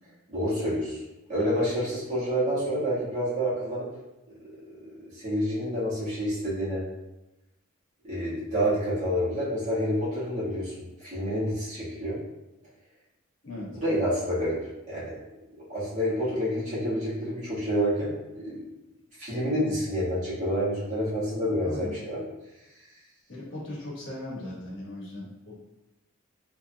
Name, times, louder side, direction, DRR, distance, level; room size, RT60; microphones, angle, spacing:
voice 1, 0.3-1.0 1.3-3.9 4.7-6.8 8.0-12.2 13.8-14.6 14.9-15.2 15.7-18.6 19.2-22.2, equal, 35° right, -10 dB, 1.5 m, -28 dB
voice 2, 13.4-13.8 21.5-22.0 23.3-25.5, left 1 dB, 55° left, -6 dB, 1.2 m, -38 dB
3.5 x 2.8 x 2.2 m, 0.98 s
head